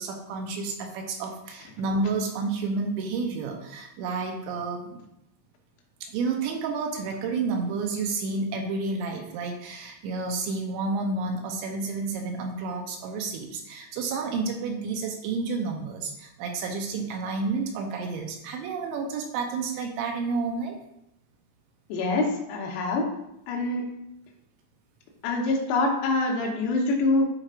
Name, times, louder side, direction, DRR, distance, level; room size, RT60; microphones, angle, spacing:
voice 1, 0.0-5.0 6.0-20.8, right 4 dB, 80° right, 2 dB, 2.7 m, -30 dB
voice 2, 21.9-23.1 23.5-23.8 25.2-27.3, left 2 dB, 90° left, 0 dB, 3.9 m, -25 dB
12.0 x 4.6 x 2.5 m, 0.83 s
omnidirectional pair, 5.9 m